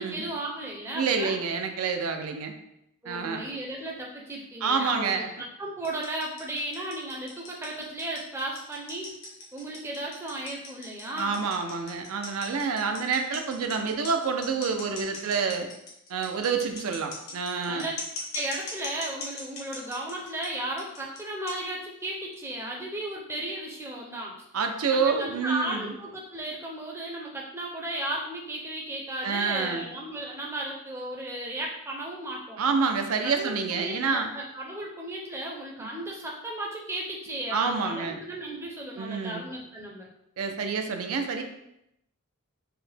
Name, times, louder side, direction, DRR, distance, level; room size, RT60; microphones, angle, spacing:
voice 1, 0.0-1.4 3.0-9.1 9.5-11.4 17.7-17.9 18.3-24.3 24.9-32.6 33.2-40.1, right 1 dB, 10° right, -2 dB, 0.5 m, -35 dB
voice 2, 0.9-2.5 3.1-3.4 4.6-5.3 11.2-15.7 16.1-17.9 24.5-25.9 29.2-29.8 32.6-34.3 35.8-35.9 37.5-38.2 39.0-39.4 40.4-41.4, right 5 dB, 75° right, 5 dB, 0.4 m, -28 dB
sound 1, 5.8-20.5 20.8-21.2 21.5-21.6 22.3-22.4, left 3 dB, 65° left, 1.1 m, -39 dB
4.7 x 2.1 x 3.3 m, 0.80 s
head